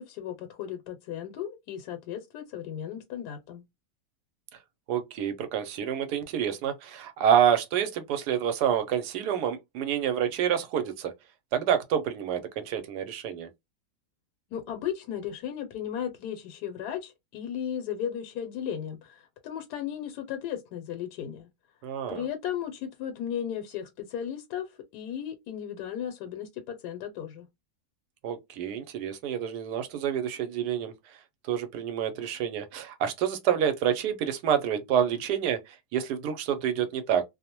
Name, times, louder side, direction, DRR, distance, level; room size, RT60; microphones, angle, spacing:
voice 1, 0.0-3.6 14.5-21.5 22.1-27.5, left 9 dB, 80° left, 1.2 m, -35 dB
voice 2, 4.9-11.1 11.5-13.5 21.8-22.3 28.2-30.9 31.5-37.2, right 9 dB, 80° right, 1.1 m, -28 dB
2.7 x 2.0 x 2.8 m
omnidirectional pair, 1.7 m